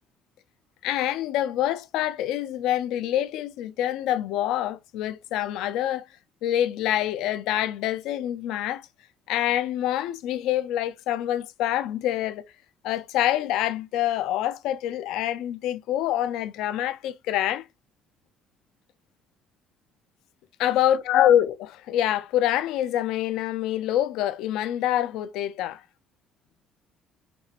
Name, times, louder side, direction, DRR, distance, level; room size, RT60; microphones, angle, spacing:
voice 1, 0.8-6.0 6.4-8.9 9.3-12.5 12.8-17.7 20.6-25.8, left 12 dB, 85° left, 0.4 m, -26 dB
5.3 x 2.5 x 2.8 m
cardioid pair, 170°, 0 cm